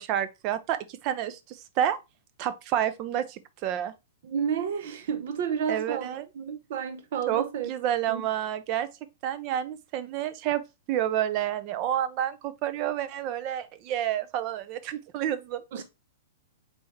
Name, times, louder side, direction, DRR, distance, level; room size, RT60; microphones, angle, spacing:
voice 1, 0.0-2.0 2.4-3.9 5.7-6.2 7.3-8.9 9.2-10.6 10.9-15.6, right 11 dB, 40° right, 0.6 m, -29 dB
voice 2, 4.2-7.7 8.1-8.2 15.7-15.8, right 7 dB, 60° right, 0.9 m, -31 dB
4.1 x 3.5 x 3.2 m
hypercardioid pair, 125°, 0 cm